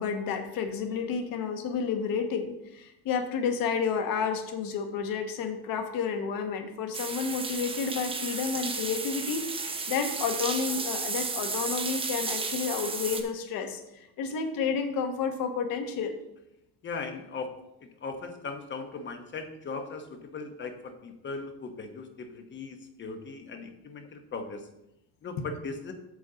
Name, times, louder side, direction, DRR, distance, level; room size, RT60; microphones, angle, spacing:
voice 1, 0.0-16.1 25.4-25.5, left 6 dB, 60° left, 7 dB, 1.2 m, -31 dB
sound 1, 6.9-13.2, right 4 dB, 15° right, 0.7 m, -33 dB
voice 2, 16.8-17.5 18.0-24.7 25.2-25.9, left 4 dB, 30° left, 6 dB, 1.0 m, -38 dB
8.5 x 7.0 x 3.9 m, 0.88 s
cardioid pair, 150°, 37 cm